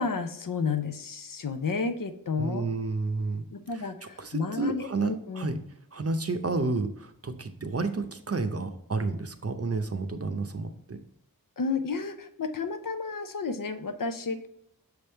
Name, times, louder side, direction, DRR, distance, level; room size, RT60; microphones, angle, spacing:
voice 1, 0.0-2.7 3.5-5.5 11.6-14.5, left 4 dB, 70° left, 9 dB, 0.6 m, -31 dB
voice 2, 2.4-3.5 3.7-3.9 4.2-5.6 5.9-11.0, right 3 dB, 45° right, 8 dB, 0.6 m, -31 dB
6.4 x 3.5 x 4.3 m, 0.77 s
wide cardioid pair, 55°, 35 cm